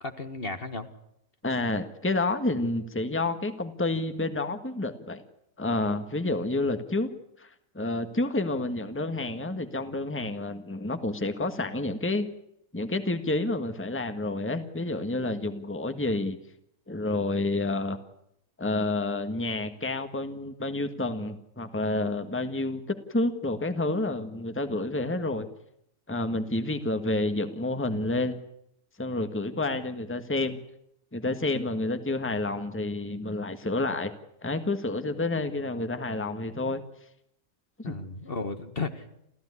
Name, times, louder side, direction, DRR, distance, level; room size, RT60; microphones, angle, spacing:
voice 1, 0.0-0.9 37.8-39.1, left 3 dB, 45° left, 8 dB, 1.9 m, -34 dB
voice 2, 1.4-5.2 5.6-7.1 7.4-7.5 7.7-12.3 12.7-16.4 16.9-18.0 18.6-25.5 26.1-28.4 29.0-30.6 31.1-34.1 34.4-36.8 37.8-37.9, left 2 dB, 10° left, 8 dB, 1.6 m, -29 dB
29.5 x 15.0 x 9.8 m, 0.76 s
omnidirectional pair, 1.4 m